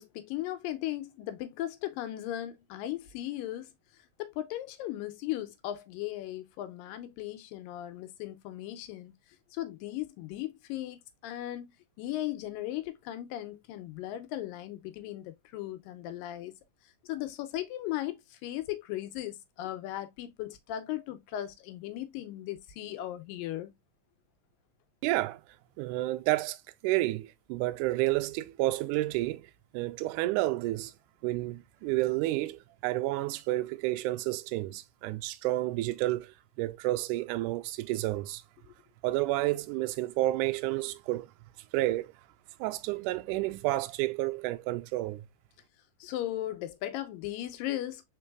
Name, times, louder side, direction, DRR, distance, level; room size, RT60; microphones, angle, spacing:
voice 1, 0.0-3.7 4.2-9.1 9.5-11.7 12.0-16.5 17.0-23.7 38.7-38.8 46.0-48.0, left 14 dB, 85° left, 2.4 m, -37 dB
voice 2, 25.0-25.4 25.8-30.9 31.2-38.4 39.0-41.3 41.7-42.1 42.6-45.3, right 18 dB, 80° right, 1.8 m, -30 dB
4.6 x 4.1 x 2.2 m
omnidirectional pair, 4.0 m